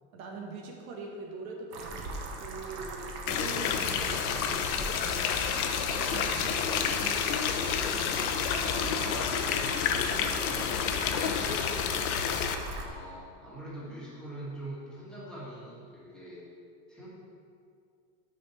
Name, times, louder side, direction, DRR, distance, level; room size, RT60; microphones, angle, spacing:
voice 1, 0.1-11.6, right 2 dB, 90° right, 0 dB, 1.4 m, -43 dB
sound 1, 1.7-12.9, right 3 dB, 40° right, 0.8 m, -41 dB
sound 2, 3.3-12.6, left 8 dB, 90° left, 0.7 m, -29 dB
voice 2, 12.8-16.5 16.9-17.1, right 1 dB, ahead, -8 dB, 1.5 m, -43 dB
6.3 x 4.2 x 5.6 m, 2.3 s
supercardioid pair, 150°, 41 cm